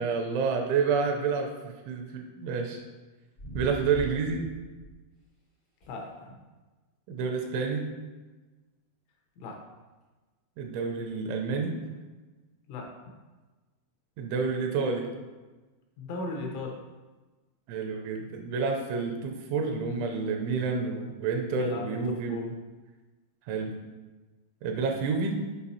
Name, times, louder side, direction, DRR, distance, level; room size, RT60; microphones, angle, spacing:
voice 1, 0.0-2.8 3.5-4.4 7.1-7.8 10.6-11.7 14.2-15.1 17.7-22.5 23.5-23.7 24.6-25.4, right 5 dB, 85° right, 2 dB, 3.0 m, -29 dB
sound 1, 3.4-5.0 5.8-6.0 11.8-11.9, right 1 dB, 70° left, 0.9 m, -40 dB
voice 2, 5.9-6.3 9.4-9.6 12.7-12.9 16.0-16.7 21.5-21.8 22.3-22.4, left 3 dB, 85° left, 0 dB, 3.3 m, -36 dB
8.1 x 5.4 x 2.8 m, 1.2 s
omnidirectional pair, 5.6 m